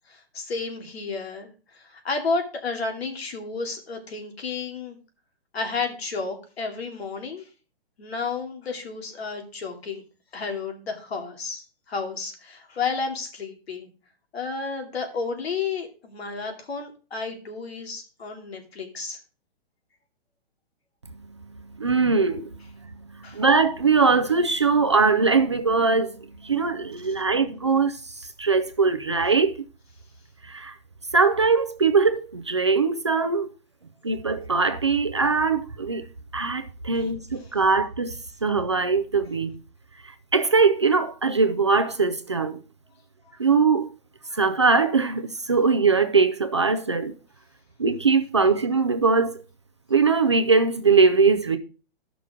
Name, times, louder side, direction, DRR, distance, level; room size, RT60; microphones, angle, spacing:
voice 1, 0.1-5.0 5.5-7.5 8.0-10.0 10.3-13.9 14.3-19.2 23.2-23.4 36.9-37.1, left 4 dB, 80° left, 2.8 m, -32 dB
voice 2, 21.8-22.5 23.3-29.6 30.4-30.8 31.1-33.5 34.0-36.0 36.3-39.6 40.0-42.6 43.4-43.9 44.3-47.1 47.8-49.3 49.9-51.6, right 4 dB, 30° right, 0.4 m, -21 dB
14.0 x 6.0 x 3.6 m
hypercardioid pair, 180°, 31 cm